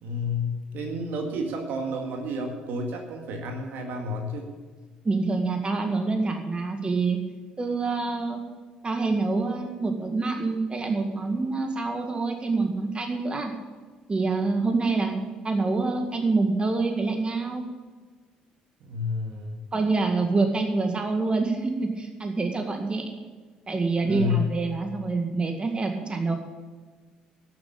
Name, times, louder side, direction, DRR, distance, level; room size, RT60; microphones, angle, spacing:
voice 1, 0.0-4.5 18.8-19.6 24.0-24.5, left 2 dB, 60° right, 3 dB, 1.9 m, -30 dB
voice 2, 5.0-7.2 7.6-8.4 8.8-13.5 14.1-15.2 15.4-17.6 19.7-23.2 23.7-26.4, right 3 dB, 25° right, 4 dB, 1.9 m, -26 dB
12.0 x 7.8 x 8.7 m, 1.4 s
hypercardioid pair, 50°, 4 cm